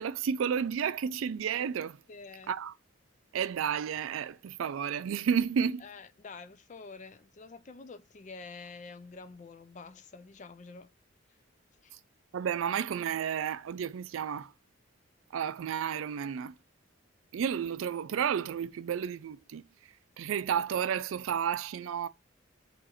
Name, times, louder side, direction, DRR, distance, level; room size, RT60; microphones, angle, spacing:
voice 1, 0.0-2.0 2.5-2.7 3.3-5.8 12.3-14.5 15.3-16.5 17.3-19.6 20.2-22.1, right 7 dB, 85° right, 0.4 m, -31 dB
voice 2, 2.1-2.5 5.8-10.9 11.8-12.0, left 4 dB, 35° left, 0.4 m, -47 dB
4.7 x 2.6 x 4.3 m
head